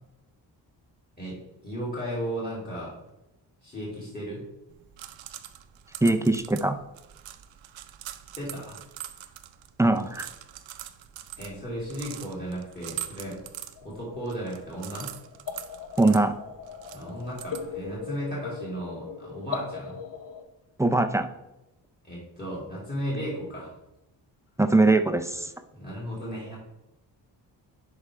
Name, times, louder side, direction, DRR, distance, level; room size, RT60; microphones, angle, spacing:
voice 1, 1.6-2.9 3.6-4.5 8.4-8.8 9.1-9.3 11.4-13.4 13.8-15.1 16.9-20.0 22.0-23.7 25.7-26.6, equal, 20° left, -5 dB, 2.4 m, -35 dB
sound 1, 4.7-18.0, right 12 dB, 85° right, 0.7 m, -43 dB
voice 2, 6.0-6.8 9.8-10.3 16.0-16.3 20.8-21.3 24.6-25.5, right 2 dB, 10° right, 8 dB, 0.3 m, -21 dB
sound 2, 13.8-20.4, left 6 dB, 50° left, 0.8 m, -40 dB
11.0 x 4.8 x 3.2 m, 0.93 s
wide cardioid pair, 135°, 44 cm